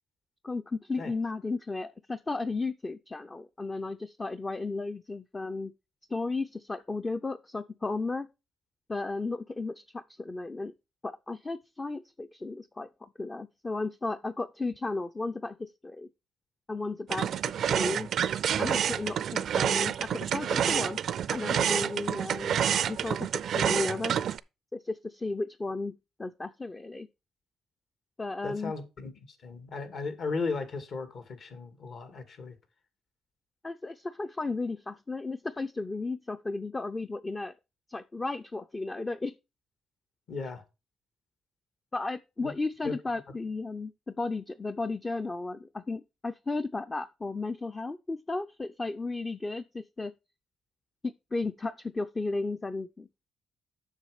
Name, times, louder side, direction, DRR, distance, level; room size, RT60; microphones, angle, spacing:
voice 1, 0.4-5.7 6.1-8.3 8.9-10.7 11.0-12.9 13.2-16.1 16.7-17.3 17.7-18.1 18.6-21.0 21.3-22.6 22.9-24.1 24.7-25.9 26.2-27.1 28.2-28.7 33.6-37.5 37.9-39.3 41.9-50.1 51.0-53.1, left 3 dB, 25° left, 0.5 m, -34 dB
sound 1, 17.1-24.4, right 9 dB, 65° right, 0.4 m, -28 dB
voice 2, 28.4-29.1 29.4-32.6 40.3-40.6 42.4-42.5 42.8-42.9, left 4 dB, 60° left, 1.9 m, -36 dB
7.4 x 6.3 x 4.9 m
cardioid pair, 90°, 0 cm